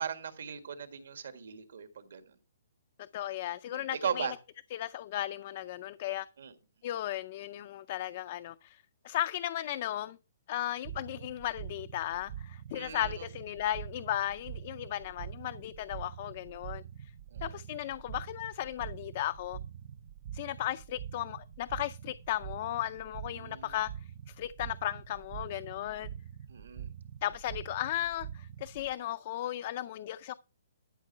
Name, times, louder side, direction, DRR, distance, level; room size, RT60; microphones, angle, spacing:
voice 1, 0.0-2.4 3.7-4.3 6.4-6.5 12.7-13.3 17.3-17.6 23.3-23.8 26.5-26.9, right 7 dB, 65° right, 1.8 m, -38 dB
voice 2, 3.1-4.3 4.7-6.3 6.8-10.2 10.5-16.8 17.4-19.6 20.3-23.9 24.3-26.1 27.2-30.3, left 13 dB, 30° left, 0.4 m, -35 dB
sound 1, 10.8-28.9, right 9 dB, 35° right, 0.5 m, -45 dB
12.5 x 6.3 x 4.4 m
hypercardioid pair, 170°, 0 cm